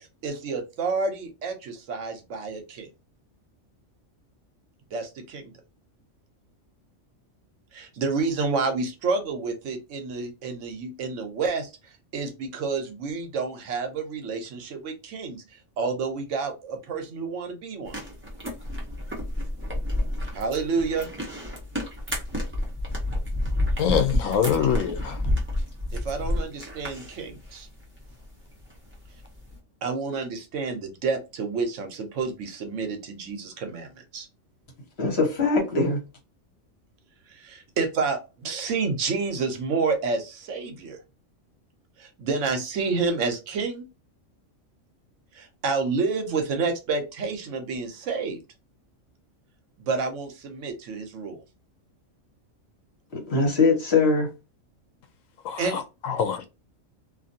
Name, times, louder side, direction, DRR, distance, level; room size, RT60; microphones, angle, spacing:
voice 1, 0.0-2.9 4.9-5.5 7.7-15.4 15.8-18.0 20.3-21.1 25.9-27.7 29.8-34.3 37.3-41.0 42.0-43.9 45.3-48.4 49.8-51.4 55.6-55.7, right 4 dB, 75° right, 1.0 m, -29 dB
sound 1, 17.9-29.6, left 1 dB, 10° right, 0.8 m, -30 dB
voice 2, 23.8-25.2 55.4-56.4, left 8 dB, 80° left, 1.0 m, -25 dB
voice 3, 35.0-36.0 53.1-54.3, left 4 dB, 55° left, 1.4 m, -22 dB
2.6 x 2.5 x 2.6 m
omnidirectional pair, 1.3 m